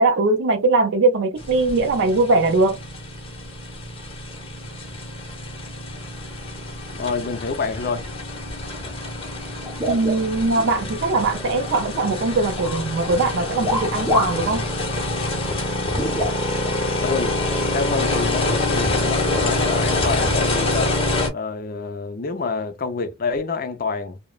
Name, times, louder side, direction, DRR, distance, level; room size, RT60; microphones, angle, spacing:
voice 1, 0.0-2.8 9.9-14.7, right 3 dB, 60° right, 0.4 m, -20 dB
sound 1, 1.4-21.3, left 2 dB, 30° left, 0.9 m, -26 dB
voice 2, 7.0-8.1 17.0-17.4 17.7-21.0 21.3-24.2, left 4 dB, 45° left, 0.5 m, -27 dB
sound 2, 9.7-10.7 11.1-12.2 12.5-12.8 13.6-14.5 14.8-14.9 15.9-16.8 17.6-17.7 18.7-18.9, left 1 dB, 5° right, 0.9 m, -27 dB
3.0 x 2.0 x 2.3 m
head